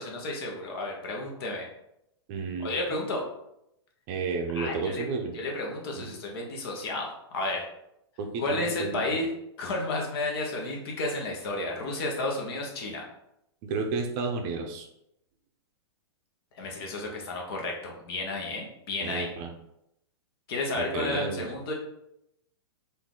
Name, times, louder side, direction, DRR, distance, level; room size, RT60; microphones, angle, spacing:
voice 1, 0.0-1.7 2.6-3.2 4.5-5.0 5.3-7.6 8.4-9.3 9.6-13.0 16.6-19.3 20.5-21.7, left 2 dB, 60° left, 0 dB, 1.2 m, -32 dB
voice 2, 2.3-3.0 4.1-5.4 6.0-6.1 8.2-9.2 13.6-14.9 19.0-19.5 20.8-21.5, right 4 dB, 40° right, 4 dB, 0.6 m, -32 dB
4.3 x 2.7 x 3.7 m, 0.82 s
hypercardioid pair, 140°, 14 cm